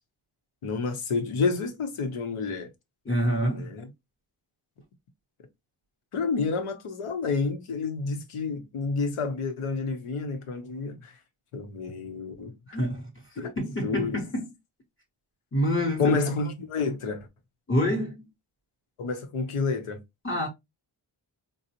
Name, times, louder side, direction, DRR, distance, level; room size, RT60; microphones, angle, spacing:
voice 1, 0.6-2.7 3.5-3.9 6.1-11.1 11.5-12.5 13.4-13.5 13.8-14.2 16.0-17.3 19.0-20.0, left 4 dB, 85° left, 0.9 m, -29 dB
voice 2, 3.0-3.7 12.7-14.5 15.5-16.2 17.7-18.3 20.2-20.5, equal, 25° left, 0.8 m, -27 dB
3.9 x 2.1 x 2.7 m
wide cardioid pair, 135°, 49 cm